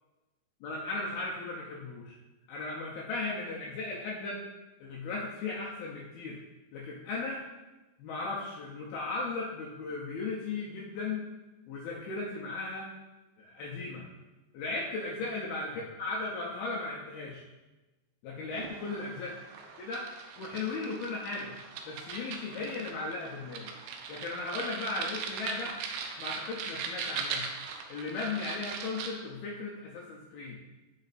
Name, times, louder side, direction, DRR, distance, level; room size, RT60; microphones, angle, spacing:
voice 1, 0.6-2.1 2.5-4.4 4.8-6.4 6.7-7.4 8.0-11.2 11.7-12.9 13.4-14.0 14.5-17.4 18.2-19.3 19.8-20.1 20.4-21.5 21.9-23.7 24.1-25.7 26.2-27.5 27.9-30.6, left 3 dB, 80° left, -3 dB, 2.3 m, -36 dB
sound 1, 18.5-29.1, right 5 dB, 85° right, 2.1 m, -40 dB
6.2 x 5.4 x 4.0 m, 1.1 s
omnidirectional pair, 5.2 m